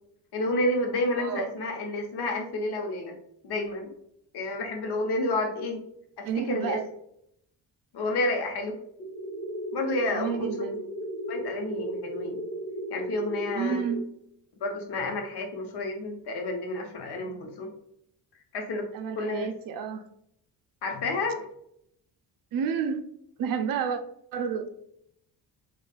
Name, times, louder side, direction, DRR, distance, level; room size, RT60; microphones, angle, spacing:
voice 1, 0.3-3.1 3.4-3.9 4.3-5.8 6.2-6.8 7.9-8.8 9.7-10.5 11.3-12.4 12.9-13.8 14.6-17.7 18.5-18.9 19.1-19.5 20.8-21.4, left 2 dB, 65° left, 2 dB, 1.0 m, -30 dB
voice 2, 1.2-1.5 6.3-6.9 10.1-10.8 13.5-14.1 18.9-20.0 22.5-23.1 23.4-24.0 24.3-24.7, right 7 dB, 50° right, 7 dB, 0.5 m, -30 dB
sound 1, 9.0-14.0, equal, 30° left, 1.3 m, -35 dB
4.1 x 2.4 x 2.3 m, 0.74 s
cardioid pair, 90°, 43 cm